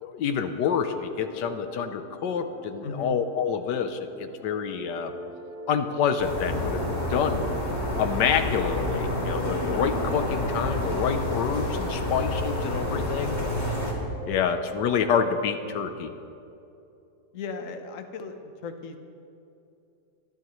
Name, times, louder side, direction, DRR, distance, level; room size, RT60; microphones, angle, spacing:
voice 1, 0.0-5.1 5.7-7.5 8.0-13.4 14.3-16.1, left 7 dB, 85° left, 8 dB, 1.4 m, -27 dB
sound 1, 1.0-8.2 8.6-12.0 12.3-15.9, equal, 5° right, 1.7 m, -42 dB
voice 2, 2.8-3.1 8.8-9.0 12.0-12.3 17.3-19.0, left 3 dB, 55° left, 6 dB, 1.2 m, -37 dB
sound 2, 6.2-13.9, left 1 dB, 20° left, 2.7 m, -29 dB
24.0 x 11.5 x 3.1 m, 2.7 s
omnidirectional pair, 1.8 m